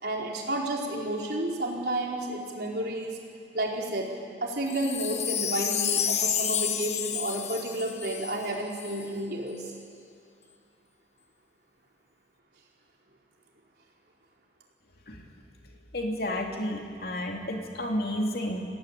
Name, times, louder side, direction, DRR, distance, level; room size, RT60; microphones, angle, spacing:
voice 1, 0.0-3.2 3.5-4.1 4.4-9.6, right 1 dB, 65° right, -2 dB, 4.5 m, -31 dB
Wind chime, 4.7-9.0 9.6-9.7, left 9 dB, 40° left, 1.2 m, -30 dB
voice 2, 15.9-18.6, left 1 dB, 60° left, 1 dB, 3.1 m, -31 dB
29.0 x 17.5 x 8.6 m, 2.4 s
head